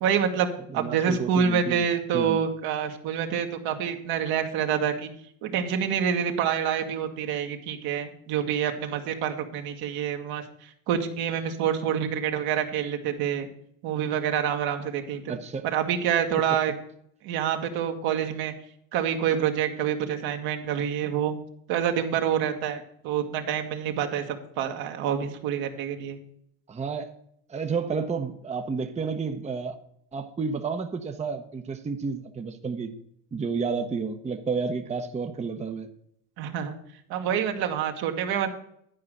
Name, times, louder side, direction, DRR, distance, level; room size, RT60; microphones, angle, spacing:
voice 1, 0.0-5.1 5.4-10.4 10.9-13.5 13.8-15.2 15.6-16.8 17.2-18.5 18.9-21.3 21.7-26.2 36.4-36.8 37.1-38.5, right 8 dB, 65° right, 5 dB, 1.6 m, -27 dB
voice 2, 0.7-1.8 2.1-2.4 15.3-15.7 26.7-27.1 27.5-29.7 30.1-32.9 33.3-35.9, right 5 dB, 15° right, 6 dB, 0.8 m, -31 dB
11.0 x 4.8 x 7.7 m, 0.72 s
supercardioid pair, 100°, 39 cm